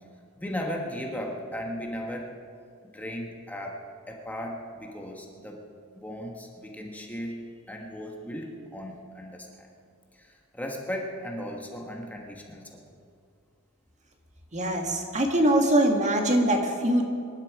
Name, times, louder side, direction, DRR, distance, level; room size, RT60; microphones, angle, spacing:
voice 1, 0.4-2.3 2.8-3.8 4.1-5.6 6.0-9.7 10.1-12.8, equal, 10° left, 0 dB, 1.5 m, -36 dB
voice 2, 14.5-17.1, right 1 dB, 35° right, 2 dB, 1.9 m, -23 dB
24.5 x 11.5 x 4.9 m, 2.3 s
head